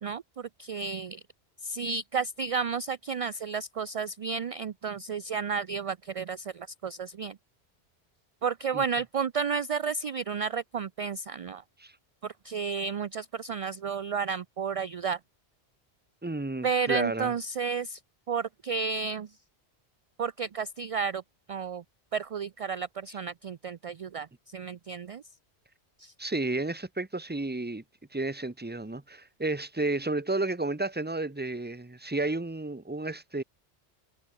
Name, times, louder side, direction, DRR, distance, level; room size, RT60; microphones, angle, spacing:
voice 1, 0.0-1.2 1.6-7.4 8.4-11.6 12.2-15.2 16.6-18.0 18.3-19.4 20.2-21.2 21.5-21.8 22.1-25.2 26.0-26.1, right 5 dB, 50° right, 0.4 m, -32 dB
voice 2, 16.2-17.3 26.2-27.8 28.1-33.4, right 2 dB, 10° right, 0.9 m, -32 dB
omnidirectional pair, 1.1 m